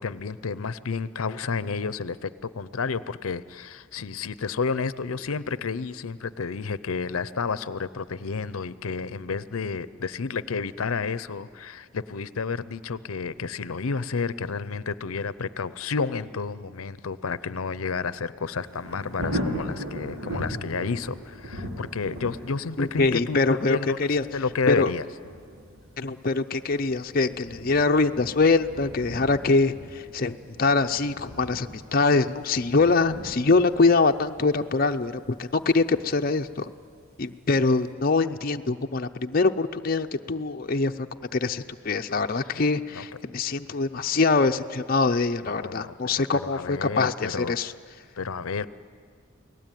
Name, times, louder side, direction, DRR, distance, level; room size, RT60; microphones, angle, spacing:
voice 1, 0.0-25.1 42.4-42.6 42.9-43.1 45.4-47.6 48.2-48.7, left 5 dB, 85° left, 16 dB, 0.6 m, -31 dB
Thunder, 18.5-37.3 37.8-37.9, equal, 90° right, 4.2 m, -39 dB
voice 2, 22.8-23.8 24.1-24.2 24.7-24.9 26.0-36.7 37.2-41.1 41.3-47.7, left 3 dB, 45° left, 5 dB, 0.6 m, -24 dB
29.5 x 19.0 x 9.2 m, 2.1 s
head